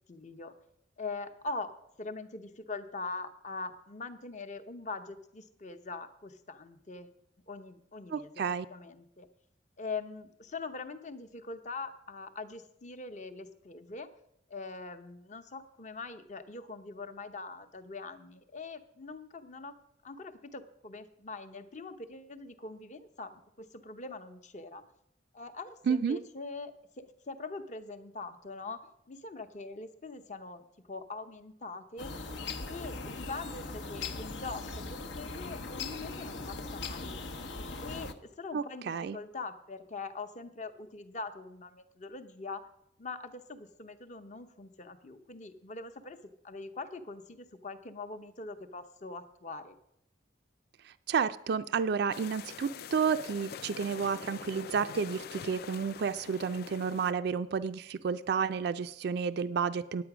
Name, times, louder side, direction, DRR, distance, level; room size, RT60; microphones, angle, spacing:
voice 1, 0.1-0.5 1.0-7.2 7.5-8.3 8.7-9.3 9.8-14.1 14.5-19.8 20.0-24.8 25.3-32.1 32.7-37.1 37.8-42.7 43.0-46.2 46.4-49.7, left 3 dB, 40° left, 9 dB, 0.8 m, -43 dB
voice 2, 8.1-8.7 25.9-26.2 38.5-39.2 50.8-60.0, right 6 dB, 60° right, 11 dB, 0.4 m, -31 dB
sound 1, 32.0-38.1, left 3 dB, 75° left, 0.8 m, -40 dB
sound 2, 52.1-57.1, left 7 dB, 55° left, 0.4 m, -45 dB
9.5 x 8.9 x 6.0 m, 0.75 s
head